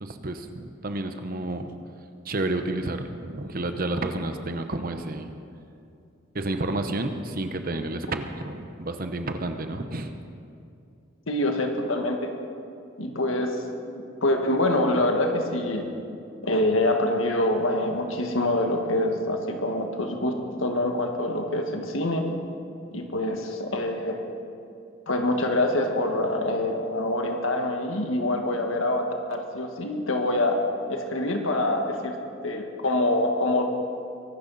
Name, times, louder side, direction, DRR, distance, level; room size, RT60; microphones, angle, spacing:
voice 1, 0.0-1.7 2.2-5.3 6.3-10.1, right 2 dB, 45° right, 7 dB, 0.9 m, -30 dB
voice 2, 11.3-12.3 13.0-13.5 13.9-15.9 16.4-22.3 22.9-24.3 25.1-30.6 30.9-32.1 32.4-33.6, left 1 dB, 85° left, 3 dB, 1.7 m, -25 dB
23.0 x 12.0 x 4.1 m, 2.5 s
head